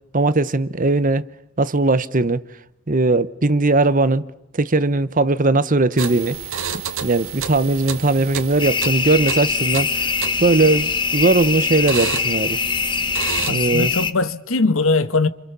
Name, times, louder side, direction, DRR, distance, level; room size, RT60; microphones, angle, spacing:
voice 1, 0.1-1.2 1.6-2.4 2.9-4.2 4.5-6.4 7.0-10.1 10.4-12.6 13.5-13.9, right 2 dB, 40° right, 1.0 m, -19 dB
sound 1, 6.0-13.5, right 7 dB, 85° right, 1.9 m, -31 dB
sound 2, 8.6-14.1, left 5 dB, 25° left, 1.0 m, -23 dB
voice 2, 13.5-15.3, left 3 dB, 80° left, 1.3 m, -20 dB
30.0 x 27.5 x 7.0 m
head